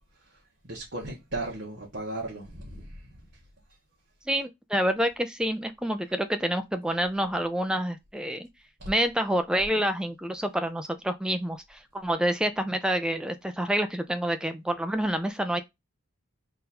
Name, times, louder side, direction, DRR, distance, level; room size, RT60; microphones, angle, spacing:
voice 1, 0.2-3.2, right 2 dB, 50° right, 1.2 m, -37 dB
voice 2, 4.3-8.5 8.9-15.6, equal, 5° right, 0.4 m, -28 dB
3.8 x 2.6 x 4.2 m
head